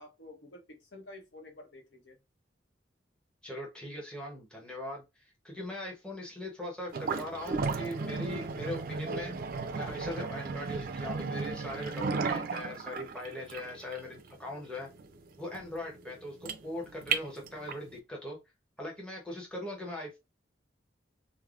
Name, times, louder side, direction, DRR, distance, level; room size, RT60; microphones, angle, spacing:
voice 1, 0.0-2.2, left 2 dB, 75° left, 0.8 m, -50 dB
voice 2, 3.4-5.0 5.4-9.3 9.7-14.9 15.4-18.4 18.8-20.2, left 1 dB, 5° left, 0.7 m, -40 dB
sound 1, 6.9-17.9, right 4 dB, 50° right, 0.3 m, -35 dB
3.2 x 2.0 x 2.4 m
head